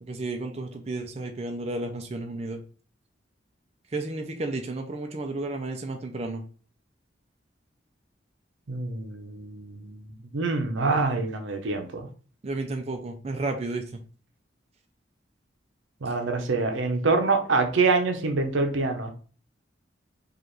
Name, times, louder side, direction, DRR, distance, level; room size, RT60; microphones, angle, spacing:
voice 1, 0.0-2.6 3.9-6.4 12.4-14.0, right 2 dB, 35° right, 4 dB, 0.4 m, -32 dB
voice 2, 8.7-12.1 16.0-19.1, right 3 dB, 85° right, 4 dB, 0.7 m, -26 dB
4.8 x 2.4 x 3.0 m, 0.40 s
head